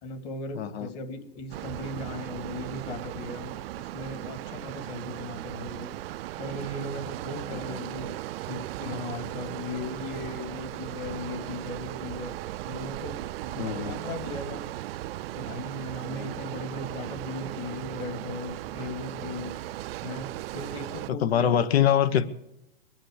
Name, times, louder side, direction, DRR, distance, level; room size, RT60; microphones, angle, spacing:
voice 1, 0.0-5.9 6.4-8.1 8.5-12.3 12.7-14.6 15.3-19.5 20.0-21.6, left 2 dB, 40° left, 6 dB, 2.5 m, -37 dB
voice 2, 0.5-0.9 7.7-7.8 13.6-14.0 16.2-16.3 21.2-22.3, left 9 dB, 90° left, 14 dB, 1.2 m, -24 dB
sound 1, 1.5-21.1, right 15 dB, 70° right, 0.4 m, -37 dB
23.5 x 9.0 x 6.5 m, 0.87 s
supercardioid pair, 160°, 30 cm